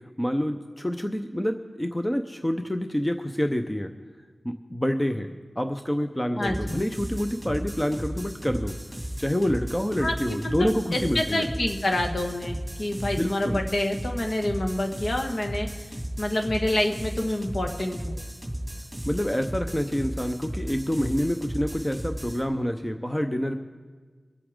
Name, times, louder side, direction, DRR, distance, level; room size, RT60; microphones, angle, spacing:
voice 1, 0.2-3.9 4.4-8.8 9.2-11.5 13.0-13.6 19.1-23.6, equal, 10° left, 6 dB, 0.7 m, -27 dB
voice 2, 6.4-6.8 10.0-10.5 10.9-15.7 16.2-18.2, left 1 dB, 50° left, 4 dB, 1.5 m, -27 dB
sound 1, 6.4-22.4, right 1 dB, 5° right, 2.5 m, -35 dB
23.5 x 8.3 x 3.7 m, 1.4 s
wide cardioid pair, 65°, 0 cm